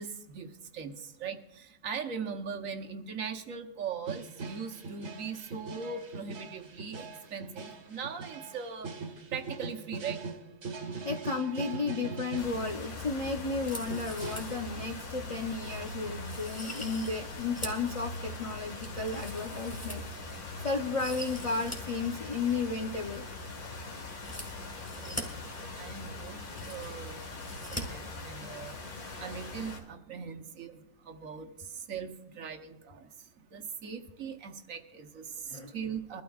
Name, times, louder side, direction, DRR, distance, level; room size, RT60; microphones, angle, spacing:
voice 1, 0.0-8.9 9.3-10.2 25.0-25.3 25.8-27.2 27.5-28.7 29.2-33.1 33.5-36.2, right 6 dB, 65° right, 5 dB, 1.3 m, -40 dB
sound 1, 4.1-12.5 13.0-14.4, right 4 dB, 50° right, 1.4 m, -41 dB
voice 2, 11.0-23.3 35.5-35.7, left 4 dB, 60° left, 4 dB, 0.3 m, -33 dB
sound 2, 12.4-29.8, left 2 dB, 90° left, 2.0 m, -41 dB
sound 3, 13.6-14.6 15.0-15.1 15.6-15.8 16.2-17.9 18.3-20.4 20.8-21.8 22.1-22.2 24.1-25.2 26.0-26.1 26.3-27.0 27.4-27.8 28.1-28.2, equal, 10° left, 1.8 m, -43 dB
22.5 x 12.5 x 2.4 m, 0.89 s
omnidirectional pair, 1.6 m